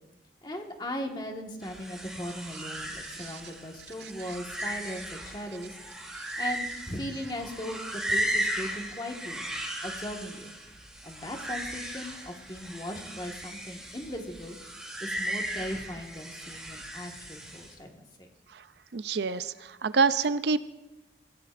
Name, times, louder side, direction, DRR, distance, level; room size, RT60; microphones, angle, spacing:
voice 1, 0.4-5.7 6.1-9.5 9.8-10.5 11.0-14.5 15.0-18.3, equal, 25° left, 2 dB, 1.6 m, -38 dB
sound 1, 1.6-17.7, equal, 5° right, 2.9 m, -36 dB
voice 2, 18.9-20.6, right 4 dB, 70° right, 13 dB, 0.5 m, -27 dB
24.5 x 17.0 x 2.6 m, 1.0 s
head